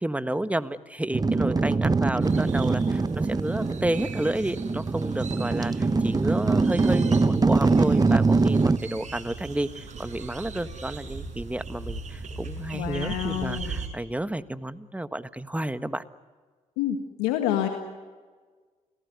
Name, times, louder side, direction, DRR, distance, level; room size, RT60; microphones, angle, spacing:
voice 1, 0.0-16.0, right 1 dB, 10° right, 12 dB, 1.5 m, -31 dB
sound 1, 1.1-8.8, right 3 dB, 25° right, 1.1 m, -23 dB
sound 2, 2.2-13.9, right 4 dB, 50° right, 6.3 m, -39 dB
voice 2, 12.7-13.8 16.8-17.7, left 11 dB, 85° left, 5 dB, 1.9 m, -28 dB
28.5 x 18.5 x 9.6 m, 1.4 s
hypercardioid pair, 55°, 16 cm